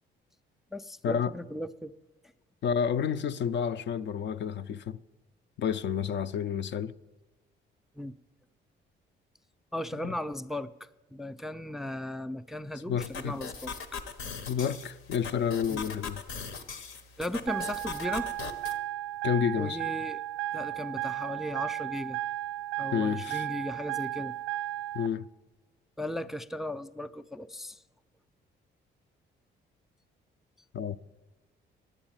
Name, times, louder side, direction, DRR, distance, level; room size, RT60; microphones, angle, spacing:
voice 1, 0.7-1.9 8.0-8.1 9.7-10.7 11.1-14.0 15.7-15.9 17.2-18.3 19.6-20.2 20.5-22.2 22.8-24.4 26.0-27.8, left 1 dB, ahead, 0.3 m, -36 dB
voice 2, 2.6-5.0 5.6-6.9 10.0-10.1 12.9-13.4 14.5-16.2 19.2-19.8 22.9-23.5 24.9-25.3 30.7-31.0, left 7 dB, 65° left, 0.5 m, -30 dB
sound 1, 13.0-18.8, left 5 dB, 80° left, 1.0 m, -40 dB
sound 2, 17.5-25.1, right 14 dB, 90° right, 0.4 m, -34 dB
9.6 x 8.9 x 8.9 m
cardioid pair, 90°, 20 cm